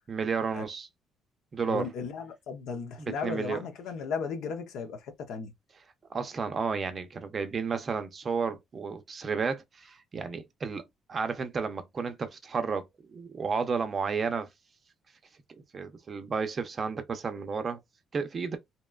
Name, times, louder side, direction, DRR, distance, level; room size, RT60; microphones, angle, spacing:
voice 1, 0.1-0.9 1.5-1.9 3.0-3.6 6.1-10.8 11.1-14.5 15.7-17.8 18.1-18.6, right 5 dB, 35° right, 0.5 m, -32 dB
voice 2, 1.7-5.5, left 5 dB, 80° left, 0.7 m, -35 dB
2.8 x 2.2 x 2.3 m
cardioid pair, 125°, 0 cm